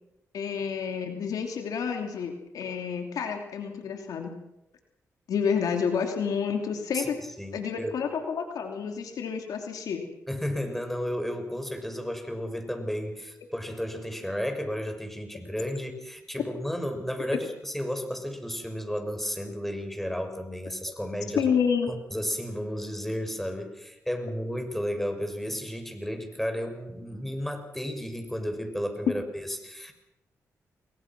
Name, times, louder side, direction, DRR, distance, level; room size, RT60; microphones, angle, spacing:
voice 1, 0.3-4.3 5.3-7.2 7.5-10.1 21.3-21.9, left 6 dB, 85° left, 4 dB, 2.9 m, -29 dB
voice 2, 6.9-7.9 10.3-21.5 21.9-29.9, equal, 5° left, 6 dB, 6.4 m, -33 dB
29.0 x 22.0 x 6.1 m, 0.89 s
cardioid pair, 65°, 6 cm